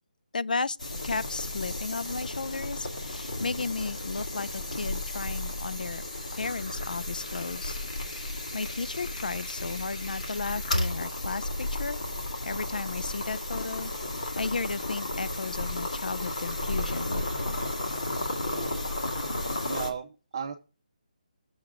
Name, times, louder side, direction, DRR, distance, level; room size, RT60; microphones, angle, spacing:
voice 1, 0.3-0.8 1.0-6.0 6.4-7.8 8.1-12.0 12.4-13.9 14.2-17.2, left 4 dB, 85° left, 0.4 m, -34 dB
sound 1, 0.8-19.9, left 2 dB, 60° left, 2.0 m, -33 dB
voice 2, 18.4-18.8 19.6-20.6, right 7 dB, 30° right, 0.6 m, -36 dB
18.5 x 7.1 x 3.7 m
hypercardioid pair, 175°, 4 cm